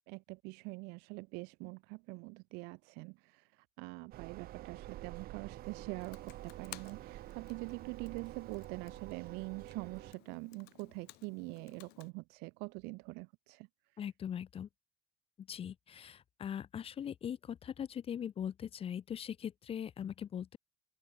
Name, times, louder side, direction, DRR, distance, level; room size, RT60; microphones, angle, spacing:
voice 1, 0.1-13.7 13.9-14.0, right 29 dB, 80° right, 0.7 m, -44 dB
sound 1, 4.1-10.1, right 15 dB, 65° right, 2.7 m, -48 dB
Computer keyboard, 6.0-12.1, left 22 dB, 75° left, 4.8 m, -57 dB
voice 2, 14.0-14.7 15.5-20.6, left 9 dB, 35° left, 0.6 m, -40 dB
open air
supercardioid pair, 100°, 17 cm